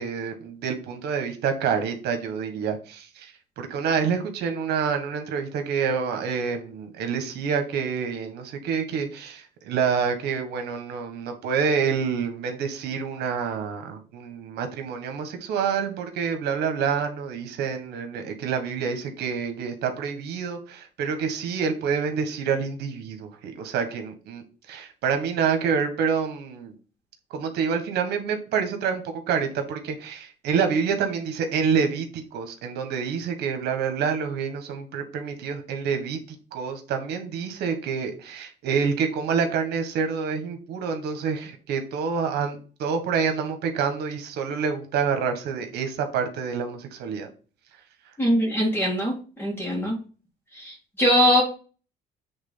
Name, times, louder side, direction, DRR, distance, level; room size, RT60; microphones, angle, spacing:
voice 1, 0.0-26.7 27.3-47.3, right 6 dB, 75° right, 6 dB, 1.6 m, -27 dB
voice 2, 48.2-50.0 50.5-51.4, equal, 10° left, -4 dB, 2.3 m, -22 dB
8.0 x 3.7 x 5.6 m, 0.37 s
cardioid pair, 110°, 17 cm